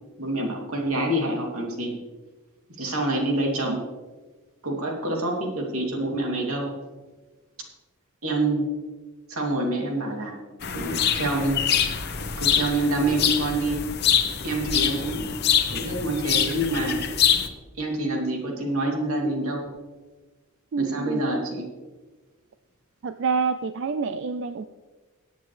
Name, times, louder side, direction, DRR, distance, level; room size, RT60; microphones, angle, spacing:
voice 1, 0.2-2.0 2.8-3.8 4.6-6.8 8.2-8.7 9.3-10.3 10.7-11.6 11.9-13.8 14.4-15.3 15.7-17.0 17.8-19.7 20.8-21.7, right 1 dB, 90° right, 0 dB, 2.7 m, -27 dB
sound 1, 10.6-17.5, left 8 dB, 50° left, 0.9 m, -25 dB
voice 2, 20.7-21.2 23.0-24.6, right 5 dB, 60° right, 10 dB, 0.4 m, -27 dB
18.5 x 8.2 x 3.3 m, 1.2 s
head